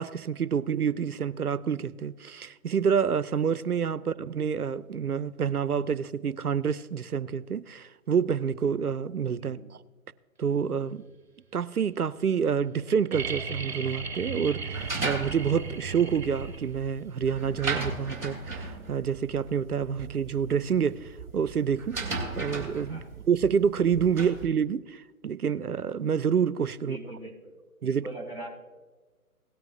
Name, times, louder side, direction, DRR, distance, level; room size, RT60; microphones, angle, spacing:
voice 1, 0.0-9.8 10.4-11.0 11.5-22.0 22.4-27.0 27.8-28.0, right 7 dB, 85° right, 0.6 m, -28 dB
voice 2, 9.4-9.7 22.9-23.2 26.8-27.6 27.9-28.5, right 1 dB, 20° left, 3.6 m, -42 dB
sound 1, 13.1-16.9 18.6-18.7, right 5 dB, 45° right, 1.5 m, -35 dB
sound 2, 14.7-24.5, right 3 dB, 5° right, 2.1 m, -36 dB
18.0 x 9.3 x 2.5 m
figure-of-eight pair, 145°, 44 cm